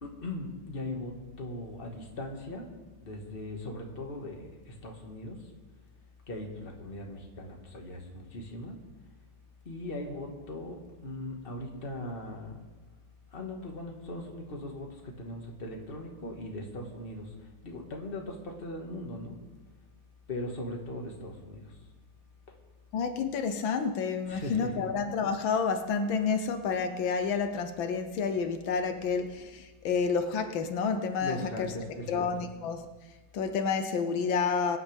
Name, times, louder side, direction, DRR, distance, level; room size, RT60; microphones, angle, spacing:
voice 1, 0.0-2.7 3.0-5.5 6.3-8.8 9.7-12.6 13.3-19.4 20.3-21.8 22.5-22.6 24.3-24.9 31.2-32.5, left 1 dB, 30° left, 1 dB, 1.8 m, -39 dB
voice 2, 22.9-31.7 32.1-32.9 33.3-34.8, left 5 dB, 80° left, 7 dB, 1.6 m, -29 dB
23.0 x 9.6 x 3.5 m, 1.2 s
omnidirectional pair, 2.1 m